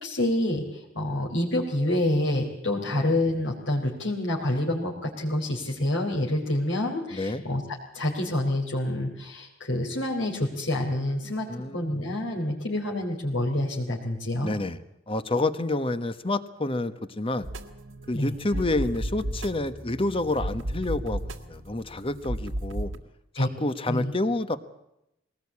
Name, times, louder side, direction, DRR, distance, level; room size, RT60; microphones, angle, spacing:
voice 1, 0.0-7.6 7.9-14.5 18.1-18.3 23.4-23.5 23.9-24.1, left 1 dB, 70° left, -3 dB, 4.0 m, -27 dB
voice 2, 7.1-7.4 11.5-12.0 14.4-14.8 15.1-17.5 18.1-22.9 23.3-24.6, left 2 dB, 30° left, 12 dB, 1.1 m, -28 dB
sound 1, 17.4-23.0, right 1 dB, 80° right, 2.0 m, -34 dB
21.5 x 19.0 x 8.5 m, 0.82 s
head